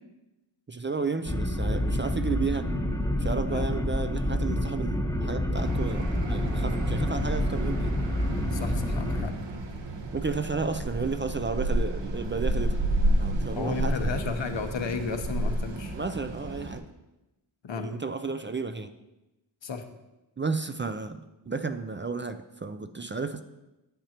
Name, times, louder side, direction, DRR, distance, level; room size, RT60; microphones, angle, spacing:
voice 1, 0.7-2.7 3.2-8.0 10.1-12.8 13.2-14.2 15.9-16.8 17.8-18.9 20.4-23.4, right 4 dB, 25° right, 9 dB, 0.4 m, -32 dB
sound 1, 1.2-9.2, left 1 dB, 5° left, 1.1 m, -28 dB
sound 2, 5.5-16.8, right 1 dB, 65° right, 1.2 m, -31 dB
voice 2, 8.5-9.3 13.5-15.9 17.6-17.9 19.6-19.8, left 5 dB, 70° left, 6 dB, 1.1 m, -33 dB
10.0 x 8.6 x 2.9 m, 0.99 s
wide cardioid pair, 80°, 46 cm